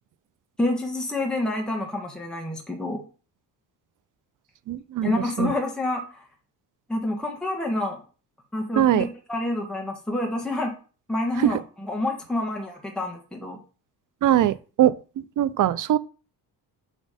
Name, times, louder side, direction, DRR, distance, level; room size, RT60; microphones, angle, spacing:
voice 1, 0.6-3.0 5.0-6.2 6.9-8.0 8.5-10.7 11.1-13.6, left 1 dB, ahead, 1.5 m, -28 dB
voice 2, 4.7-5.1 5.4-5.5 8.8-9.1 14.2-15.0 15.4-16.0, right 12 dB, 50° right, 0.5 m, -21 dB
6.1 x 4.1 x 5.0 m
cardioid pair, 105°, 40 cm